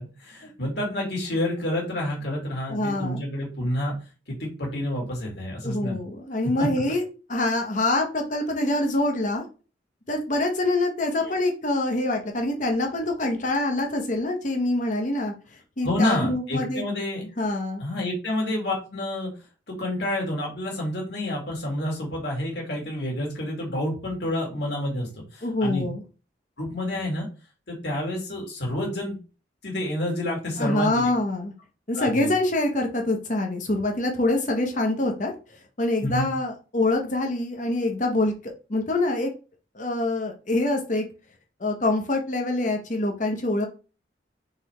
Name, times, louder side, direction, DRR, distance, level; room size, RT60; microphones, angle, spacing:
voice 1, 0.0-3.9 4.3-6.0 6.6-6.7 11.2-11.4 15.8-17.2 17.8-19.3 19.7-25.9 26.6-27.3 27.7-29.2 29.6-31.1 32.0-32.3 36.0-36.3, left 1 dB, 60° left, -2 dB, 1.9 m, -29 dB
voice 2, 2.7-3.2 5.6-7.0 7.3-9.4 10.1-15.3 15.8-16.8 17.4-17.8 25.4-26.0 30.6-31.5 31.9-35.3 35.8-38.3 38.7-39.3 39.7-41.0 41.6-43.7, left 2 dB, 40° left, 3 dB, 0.9 m, -25 dB
4.1 x 3.9 x 3.2 m, 0.34 s
head